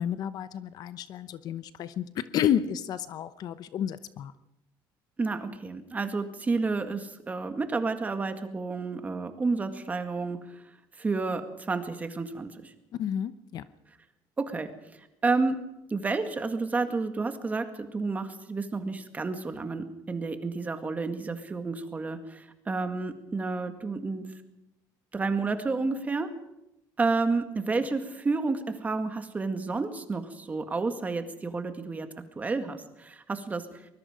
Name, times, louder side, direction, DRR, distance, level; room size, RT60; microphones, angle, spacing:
voice 1, 0.0-4.3 12.9-13.6, left 9 dB, 50° left, 13 dB, 0.9 m, -31 dB
voice 2, 5.2-10.6 11.0-12.7 14.4-14.7 15.2-15.6 15.9-24.3 25.1-26.3 27.0-32.1 32.4-33.6, right 3 dB, 20° right, 7 dB, 1.9 m, -30 dB
24.0 x 21.0 x 5.1 m, 0.89 s
cardioid pair, 150°, 8 cm